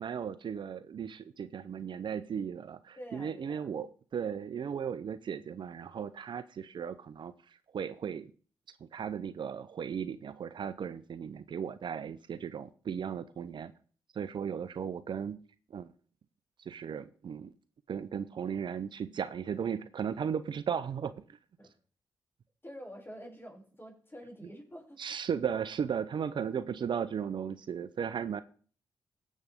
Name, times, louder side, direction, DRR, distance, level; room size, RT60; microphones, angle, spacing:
voice 1, 0.0-8.3 8.8-13.7 14.1-15.4 15.7-15.9 16.6-17.5 17.9-21.4 25.0-28.4, right 7 dB, 60° right, 0.6 m, -36 dB
voice 2, 3.0-3.7 21.6-21.7 22.6-25.0, equal, 25° left, 6.1 m, -47 dB
17.0 x 7.4 x 3.6 m
supercardioid pair, 50°, 9 cm